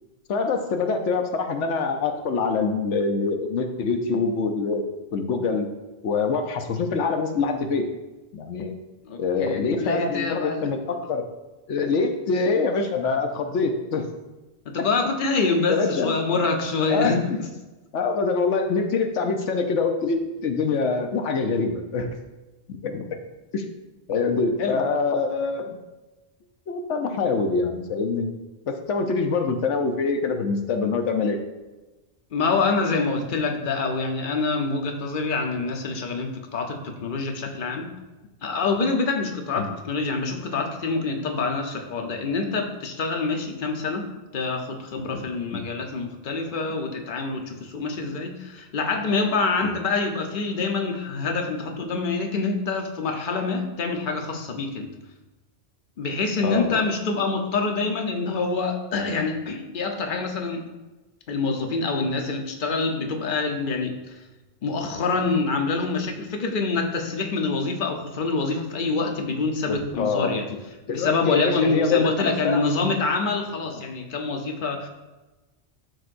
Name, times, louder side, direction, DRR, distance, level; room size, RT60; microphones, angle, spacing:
voice 1, 0.3-4.8 5.1-5.7 6.0-7.9 8.3-8.8 9.2-11.3 11.7-14.1 14.8-14.9 15.7-16.2 16.9-17.1 17.9-22.1 22.7-23.1 23.5-23.6 24.1-25.8 26.7-28.3 28.7-31.4 39.6-39.7 45.5-45.6 49.6-49.7 56.4-56.8 69.7-70.4 70.9-72.6, left 4 dB, 90° left, 5 dB, 1.1 m, -25 dB
voice 2, 9.0-10.7 14.7-17.2 24.6-24.8 32.3-37.9 38.4-44.1 44.3-54.9 56.0-60.7 61.3-64.1 64.6-70.5 70.9-74.9, left 4 dB, 50° left, 3 dB, 1.0 m, -26 dB
12.0 x 4.7 x 2.6 m, 1.1 s
omnidirectional pair, 1.2 m